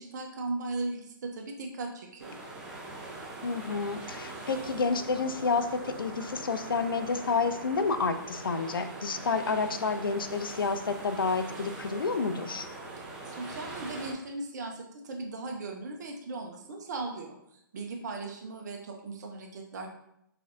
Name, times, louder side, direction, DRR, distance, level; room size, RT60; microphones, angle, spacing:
voice 1, 0.0-2.4 13.2-19.9, right 3 dB, 55° right, 2 dB, 0.6 m, -38 dB
sound 1, 2.2-14.1, right 2 dB, 5° right, 0.7 m, -42 dB
voice 2, 3.4-12.7, left 4 dB, 80° left, 10 dB, 0.4 m, -29 dB
3.9 x 3.2 x 2.6 m, 0.78 s
figure-of-eight pair, 135°, 11 cm